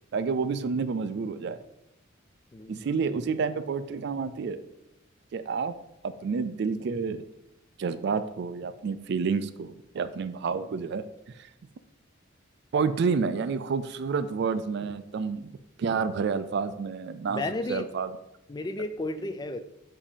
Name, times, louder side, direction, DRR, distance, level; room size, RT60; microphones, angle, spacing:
voice 1, 0.1-1.6 2.7-4.6 5.3-5.7 6.0-7.2 7.8-11.0 11.4-11.5 12.7-17.4 17.7-18.1, right 5 dB, 55° right, 12 dB, 0.3 m, -29 dB
voice 2, 2.5-2.9 17.3-17.9 18.5-19.6, left 2 dB, 20° left, 9 dB, 0.3 m, -33 dB
7.2 x 2.8 x 5.0 m, 0.89 s
head